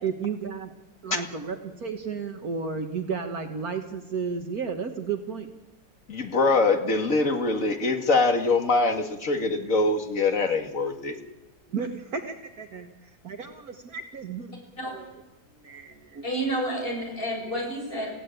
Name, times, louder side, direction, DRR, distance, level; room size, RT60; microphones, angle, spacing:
voice 1, 0.0-0.7 1.0-5.5 11.7-14.5 14.9-15.1 15.6-16.3, right 5 dB, 60° right, 5 dB, 1.9 m, -33 dB
voice 2, 6.1-11.1, left 3 dB, 50° left, 5 dB, 2.4 m, -23 dB
voice 3, 16.2-18.1, right 1 dB, 30° left, 0 dB, 7.5 m, -29 dB
27.0 x 16.5 x 9.1 m, 1.1 s
omnidirectional pair, 1.8 m